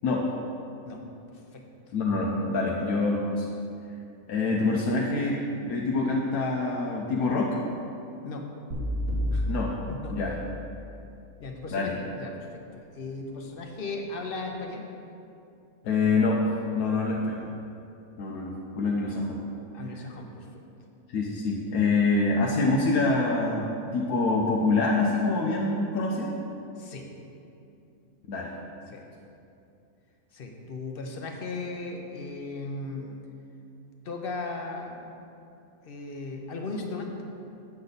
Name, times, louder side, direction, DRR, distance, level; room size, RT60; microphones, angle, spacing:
voice 1, 1.3-1.6 8.2-8.5 9.3-9.5 9.9-10.2 11.4-14.8 16.8-17.4 19.7-20.5 26.8-27.1 28.9-29.0 30.3-33.2 34.0-35.2 35.8-37.1, left 3 dB, 50° left, 2 dB, 0.9 m, -37 dB
voice 2, 1.9-3.5 4.3-5.4 5.6-7.6 9.5-9.7 10.1-10.4 11.7-11.9 15.8-16.4 16.7-17.3 18.2-19.4 21.1-26.3 28.3-28.5, left 3 dB, 85° left, -2 dB, 1.2 m, -25 dB
sound 1, 8.7-10.9, equal, 55° right, 1.7 m, -31 dB
8.5 x 6.6 x 4.0 m, 2.7 s
omnidirectional pair, 1.5 m